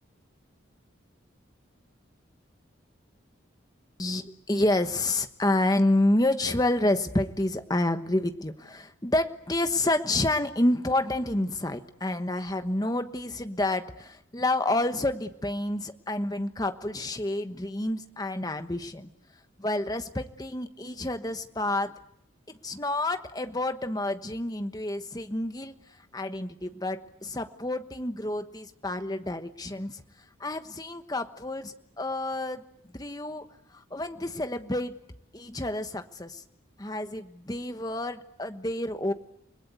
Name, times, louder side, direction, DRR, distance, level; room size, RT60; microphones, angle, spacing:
voice 1, 4.0-19.1 19.6-21.9 22.6-25.7 26.1-30.0 30.4-32.6 32.9-33.5 33.7-35.0 35.3-36.4 36.8-39.1, left 1 dB, 20° left, 8 dB, 1.2 m, -29 dB
29.5 x 21.5 x 8.2 m, 0.78 s
head